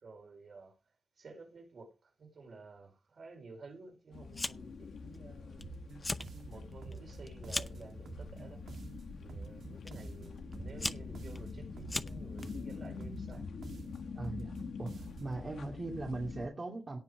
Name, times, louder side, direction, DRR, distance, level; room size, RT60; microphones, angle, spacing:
voice 1, 0.0-0.7 1.2-5.7 6.4-8.6 9.2-13.4, right 3 dB, 50° right, 4.6 m, -52 dB
sound 1, 4.1-16.5, left 5 dB, 85° left, 1.6 m, -45 dB
Fire, 4.3-4.8 5.1-5.6 5.9-6.3 6.7-7.9 8.7-9.0 9.9-10.0 10.5-12.5, left 2 dB, 15° left, 0.7 m, -38 dB
sound 2, 5.6-15.4, right 4 dB, 90° right, 2.7 m, -49 dB
voice 2, 14.1-17.0, right 2 dB, 30° right, 2.5 m, -40 dB
17.5 x 6.1 x 5.1 m
wide cardioid pair, 165°, 0 cm